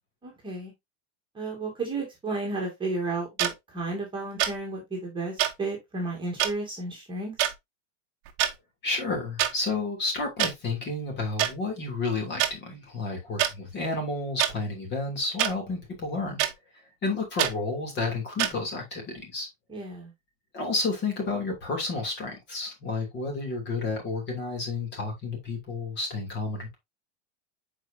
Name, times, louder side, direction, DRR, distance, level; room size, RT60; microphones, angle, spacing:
voice 1, 0.2-0.7 1.3-7.5 19.7-20.1, right 3 dB, 15° right, 2.2 m, -33 dB
sound 1, 3.4-3.5 4.4-4.6 5.4-5.5 6.4-6.5 7.4-7.5 8.3-8.5 9.4-9.5 10.4-10.5 11.4-11.5 12.4-12.5 13.4-13.5 14.4-14.5 15.4-15.5 16.4-16.5 17.4-17.5 18.4-18.5, right 12 dB, 40° right, 1.1 m, -24 dB
voice 2, 8.8-16.4 17.0-19.5 20.5-26.8, left 3 dB, 30° left, 3.0 m, -31 dB
8.0 x 4.8 x 2.8 m
supercardioid pair, 155°, 38 cm